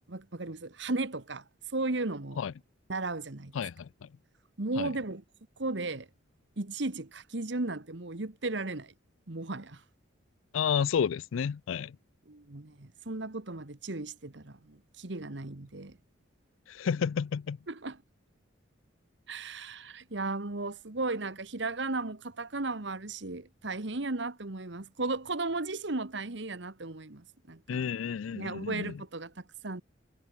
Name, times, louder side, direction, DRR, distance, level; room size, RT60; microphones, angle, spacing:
voice 1, 0.1-1.4 1.7-2.4 2.9-3.5 4.6-5.2 5.6-6.1 6.6-8.9 9.3-9.8 12.3-16.0 17.7-18.0 19.3-27.8 28.3-29.3 29.6-29.8, right 2 dB, 65° right, 1.5 m, -35 dB
voice 2, 3.5-4.1 4.8-4.9 10.5-12.0 16.7-17.6 27.7-29.0, left 7 dB, 85° left, 0.4 m, -31 dB
head